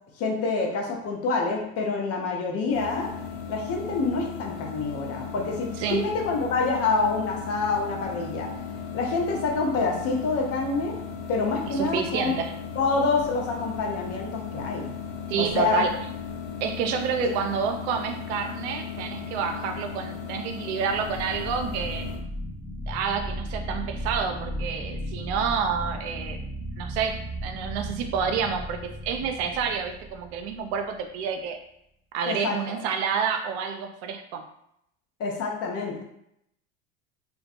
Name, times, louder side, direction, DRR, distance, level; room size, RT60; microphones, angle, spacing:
voice 1, 0.2-3.1 3.5-8.5 8.9-11.0 11.3-12.3 12.8-14.9 15.4-15.8 17.2-17.3 32.3-32.6 35.2-36.0, left 3 dB, 45° left, 0 dB, 0.7 m, -27 dB
sound 1, 2.7-22.2, left 6 dB, 70° left, 1.1 m, -37 dB
voice 2, 11.7-12.5 15.3-15.9 16.6-22.1 22.9-26.4 26.8-31.6 32.1-34.4, right 6 dB, 70° right, 5 dB, 0.5 m, -29 dB
sound 2, 15.9-16.4 20.8-31.0, equal, 5° right, 1.1 m, -36 dB
2.2 x 2.1 x 2.7 m, 0.75 s
hypercardioid pair, 95°, 35 cm